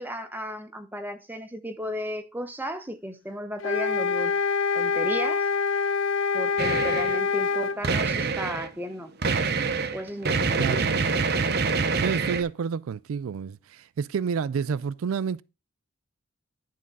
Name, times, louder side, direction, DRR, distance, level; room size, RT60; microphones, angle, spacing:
voice 1, 0.0-4.3 4.7-5.5 6.3-9.1 9.9-10.8, equal, 10° right, 0.9 m, -34 dB
sound 1, 3.6-7.8, left 5 dB, 60° left, 0.4 m, -25 dB
sound 2, 6.6-7.2 7.8-8.7 9.2-12.4, right 4 dB, 50° right, 0.7 m, -26 dB
voice 2, 10.6-11.1 12.0-15.4, right 6 dB, 80° right, 0.4 m, -29 dB
11.0 x 3.7 x 5.4 m
head